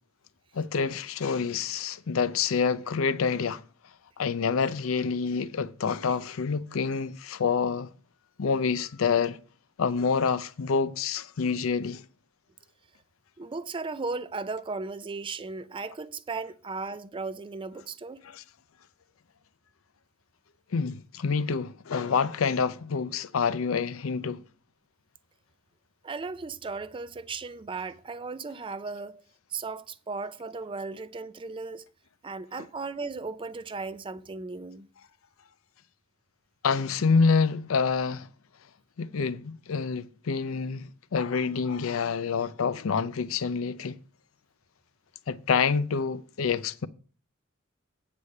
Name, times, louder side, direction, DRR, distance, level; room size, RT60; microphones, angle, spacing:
voice 1, 0.5-3.6 4.2-7.9 8.4-9.4 9.8-12.0 18.2-18.4 20.7-24.4 32.6-32.7 36.6-38.3 39.0-44.0 45.3-46.9, left 5 dB, 75° left, 0.5 m, -27 dB
voice 2, 13.4-18.2 26.0-29.2 29.5-31.9 32.2-34.9, right 4 dB, 25° right, 0.4 m, -36 dB
8.4 x 5.0 x 6.6 m
head